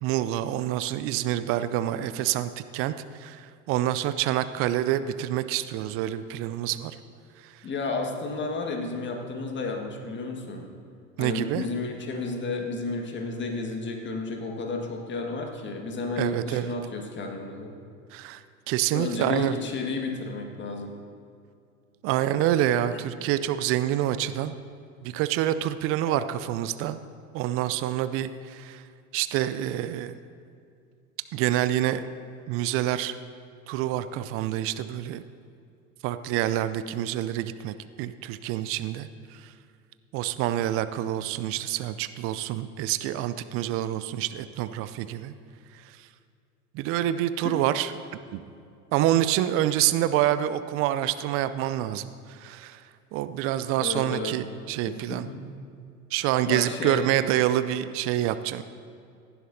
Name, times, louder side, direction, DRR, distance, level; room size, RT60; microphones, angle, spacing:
voice 1, 0.0-7.0 7.4-7.5 11.2-11.6 16.2-16.7 18.1-19.6 22.0-24.5 25.0-27.0 27.3-28.8 29.1-30.1 31.3-32.1 32.5-33.2 33.7-35.2 36.0-39.5 40.1-45.3 46.7-47.9 48.3-48.4 48.9-52.8 53.1-55.3 56.1-58.6, right 12 dB, 30° right, 12 dB, 0.5 m, -27 dB
voice 2, 7.6-10.7 11.2-17.8 18.9-20.9 22.9-23.0 26.1-26.2 47.4-47.5 53.8-54.4 55.1-55.4 56.5-57.0, left 3 dB, 25° left, 2 dB, 1.7 m, -32 dB
17.0 x 11.0 x 2.7 m, 2.4 s
figure-of-eight pair, 85°, 44 cm